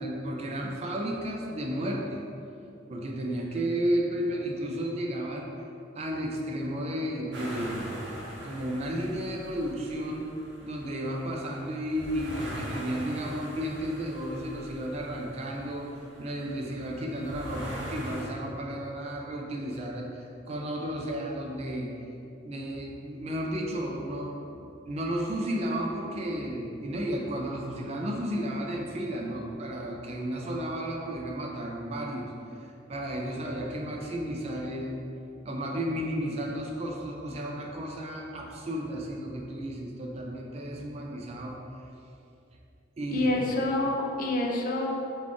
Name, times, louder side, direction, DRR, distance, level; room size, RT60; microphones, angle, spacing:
voice 1, 0.0-2.2 2.9-5.5 6.0-7.9 8.3-10.2 10.6-21.9 22.4-32.3 32.6-35.0 35.4-41.6 43.0-43.3, equal, 35° right, 0 dB, 0.4 m, -33 dB
sound 1, 7.3-18.3, equal, 75° right, 0.7 m, -42 dB
voice 2, 43.1-44.9, left 2 dB, 45° left, 0 dB, 0.4 m, -27 dB
3.5 x 2.3 x 3.6 m, 2.7 s
head